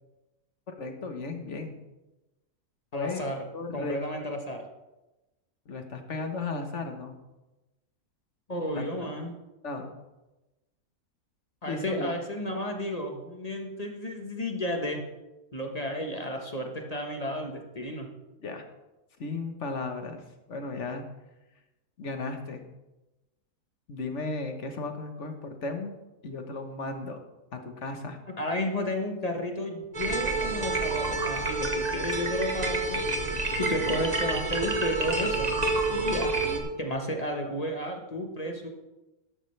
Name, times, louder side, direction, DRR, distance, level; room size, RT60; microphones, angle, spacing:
voice 1, 0.7-1.8 2.9-3.2 3.5-4.0 5.7-7.2 8.7-8.8 9.6-9.9 11.6-12.1 18.4-18.6 19.2-20.2 20.5-21.0 22.0-22.6 23.9-25.9 26.2-27.2 27.5-28.2 33.8-33.9 36.4-36.7 37.4-37.6, left 3 dB, 50° left, 5 dB, 1.5 m, -35 dB
voice 2, 2.9-3.4 3.7-4.6 8.5-9.3 11.6-15.0 15.5-18.1 28.4-33.0 33.6-35.5 35.9-36.3 36.8-38.7, equal, 25° left, 3 dB, 1.3 m, -32 dB
sound 1, 29.9-36.6, right 2 dB, 30° right, 1.3 m, -28 dB
12.5 x 12.5 x 3.3 m, 1.0 s
omnidirectional pair, 1.6 m